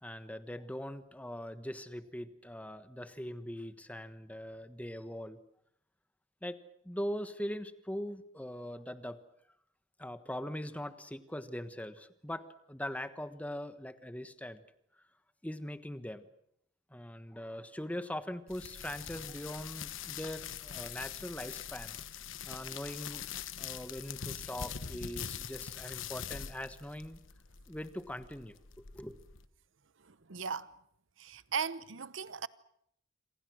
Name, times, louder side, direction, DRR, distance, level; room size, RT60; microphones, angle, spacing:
voice 1, 0.0-5.4 6.4-6.6 6.8-9.2 10.0-14.6 15.4-16.3 16.9-22.0 22.4-23.2 23.6-27.2 27.7-29.2, equal, 5° left, 1.3 m, -41 dB
sound 1, 18.5-29.5, left 8 dB, 75° left, 1.2 m, -43 dB
voice 2, 30.0-30.7 31.2-32.5, right 6 dB, 70° right, 0.9 m, -38 dB
27.0 x 26.0 x 6.4 m
head